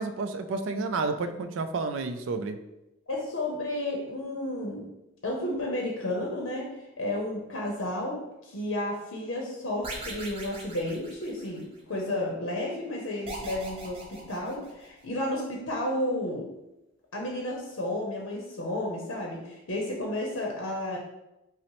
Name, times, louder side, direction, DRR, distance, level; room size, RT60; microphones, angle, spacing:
voice 1, 0.0-2.6, right 3 dB, 70° right, 8 dB, 0.3 m, -30 dB
voice 2, 3.1-4.9 5.2-16.5 17.1-21.0, left 1 dB, 80° left, -1 dB, 0.6 m, -32 dB
sound 1, 9.8-11.8 13.3-15.1, right 2 dB, 30° right, 0.7 m, -41 dB
5.5 x 2.0 x 3.0 m, 0.95 s
head